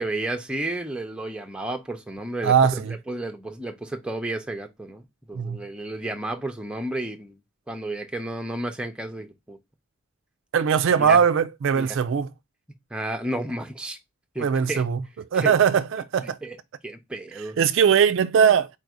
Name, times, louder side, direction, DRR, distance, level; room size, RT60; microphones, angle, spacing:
voice 1, 0.0-7.4 7.7-9.6 11.0-11.2 11.7-12.0 12.9-14.0 14.3-14.8 15.3-15.6 16.4-16.6 16.8-17.6, right 1 dB, 5° right, 0.5 m, -32 dB
voice 2, 2.4-2.9 5.4-5.6 10.5-12.3 14.4-15.0 15.3-16.4 17.6-18.7, right 7 dB, 55° right, 0.3 m, -20 dB
4.3 x 2.6 x 4.6 m
head